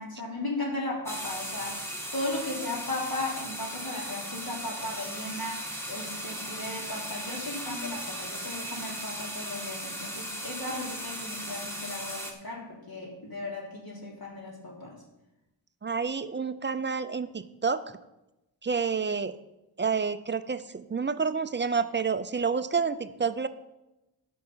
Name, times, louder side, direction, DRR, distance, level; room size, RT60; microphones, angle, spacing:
voice 1, 0.0-14.9, left 2 dB, 50° left, -3 dB, 3.2 m, -36 dB
sound 1, 1.1-12.3, equal, 5° left, 1.6 m, -37 dB
voice 2, 15.8-17.8 18.6-19.3 19.8-23.5, right 5 dB, 25° right, 12 dB, 0.5 m, -29 dB
13.0 x 5.6 x 5.6 m, 0.96 s
wide cardioid pair, 110°, 45 cm